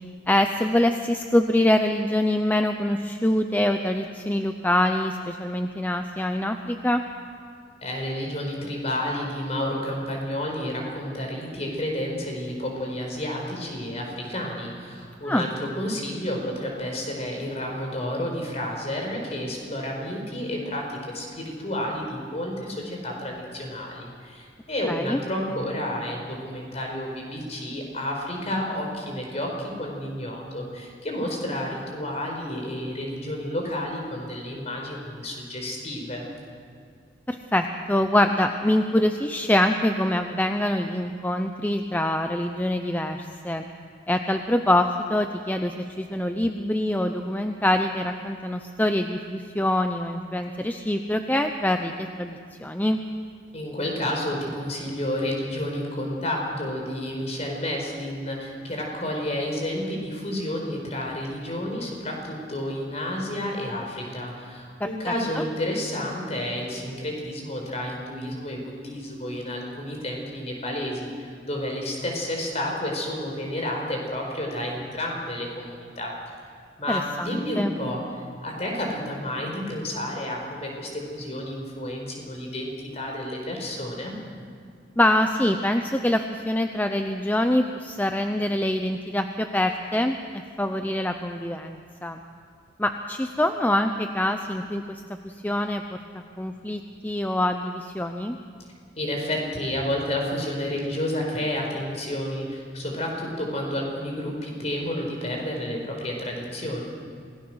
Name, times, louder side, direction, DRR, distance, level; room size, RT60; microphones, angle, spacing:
voice 1, 0.3-7.0 15.2-15.5 24.9-25.2 37.3-43.7 44.1-53.0 64.8-64.9 65.3-65.4 76.9-77.7 85.0-90.2 90.6-92.2 92.8-98.4, left 1 dB, 10° left, 6 dB, 0.6 m, -25 dB
voice 2, 7.8-36.3 53.5-76.1 76.8-78.0 78.4-84.1 98.9-106.8, left 1 dB, 35° left, 1 dB, 4.8 m, -30 dB
27.0 x 18.5 x 6.3 m, 2.2 s
head